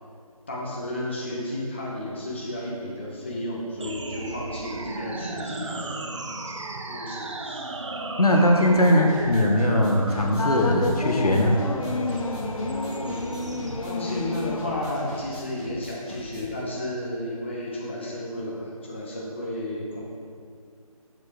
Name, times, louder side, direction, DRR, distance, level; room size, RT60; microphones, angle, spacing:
voice 1, 0.5-6.0 6.4-6.6 6.9-7.6 13.8-20.0, left 1 dB, 20° left, -5 dB, 0.6 m, -32 dB
sound 1, 3.8-13.8, right 2 dB, 55° right, 0.6 m, -35 dB
voice 2, 8.2-11.6, left 1 dB, 85° left, 1 dB, 1.1 m, -20 dB
sound 2, 8.6-16.6, equal, 15° right, 1.2 m, -42 dB
sound 3, 10.4-15.2, left 2 dB, 65° left, 0.7 m, -30 dB
6.6 x 6.1 x 3.3 m, 2.2 s
figure-of-eight pair, 165°, 19 cm